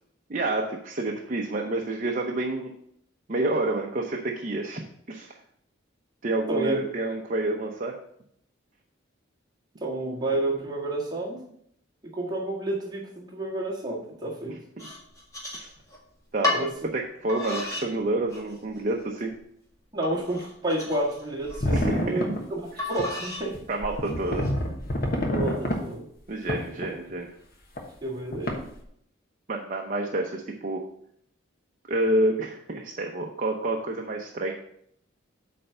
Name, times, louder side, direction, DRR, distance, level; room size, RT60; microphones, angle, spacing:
voice 1, 0.3-2.7 3.3-4.8 5.1-5.3 6.2-8.0 15.5-15.7 16.3-16.7 16.9-19.3 21.7-22.4 23.7-24.5 26.3-27.3 29.5-30.8 31.9-34.5, right 2 dB, 40° right, 1 dB, 0.7 m, -28 dB
voice 2, 6.5-6.8 9.8-11.4 12.0-14.6 16.5-16.7 19.9-23.6 25.3-26.0 28.0-28.6, right 1 dB, 20° right, -4 dB, 1.7 m, -30 dB
sound 1, 14.8-16.0 16.4-16.7 17.3-17.9 18.3-18.8 19.3-19.4 20.0-21.6 22.8-23.5 24.0-24.5, left 2 dB, 15° left, 1.6 m, -32 dB
sound 2, 21.5-22.4 23.0-23.1 23.5-23.6 23.8-25.8 26.5-27.1 27.8-27.9 28.3-28.8, left 1 dB, 50° left, 1.2 m, -27 dB
8.5 x 3.4 x 6.6 m, 0.70 s
head